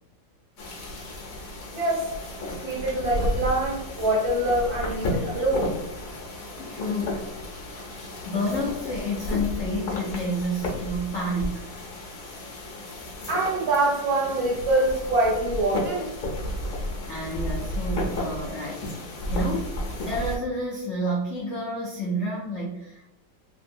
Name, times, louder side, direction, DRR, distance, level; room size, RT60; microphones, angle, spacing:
sound 1, 0.6-20.4, left 1 dB, 55° left, 1.0 m, -33 dB
voice 1, 1.7-2.1 2.6-5.8 7.5-8.0 13.3-16.1, right 1 dB, 65° right, -2 dB, 1.1 m, -25 dB
voice 2, 6.6-7.2 8.2-11.6 17.1-18.9 19.3-23.1, equal, 75° left, -4 dB, 0.6 m, -29 dB
3.0 x 2.7 x 2.5 m, 0.88 s
omnidirectional pair, 2.0 m